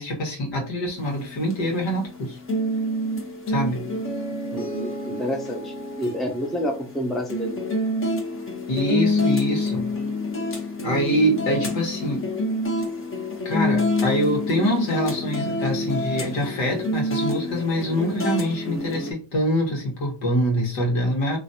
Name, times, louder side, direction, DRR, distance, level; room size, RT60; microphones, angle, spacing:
voice 1, 0.0-2.4 3.5-3.9 8.7-9.9 10.8-12.2 13.4-21.4, equal, 65° left, -1 dB, 1.6 m, -25 dB
sound 1, 1.0-19.1, left 1 dB, 25° left, 1.0 m, -27 dB
voice 2, 4.5-7.7, equal, ahead, 1 dB, 0.7 m, -29 dB
3.1 x 2.6 x 2.7 m, 0.36 s
cardioid pair, 85°, 49 cm